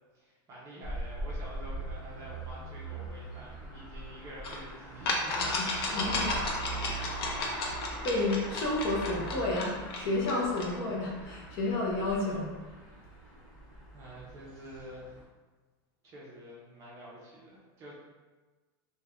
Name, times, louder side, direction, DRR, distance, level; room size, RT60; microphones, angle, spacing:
voice 1, 0.1-6.8 7.1-7.4 13.9-15.0 16.0-17.9, equal, 25° right, -6 dB, 0.5 m, -47 dB
sound 1, 0.8-15.2, right 2 dB, ahead, 1.0 m, -42 dB
sound 2, 4.4-4.6 5.1-10.8, left 2 dB, 85° left, 0.5 m, -34 dB
voice 2, 5.9-6.3 8.0-12.5, left 2 dB, 35° left, -3 dB, 0.5 m, -31 dB
3.0 x 2.1 x 2.4 m, 1.3 s
supercardioid pair, 175°, 13 cm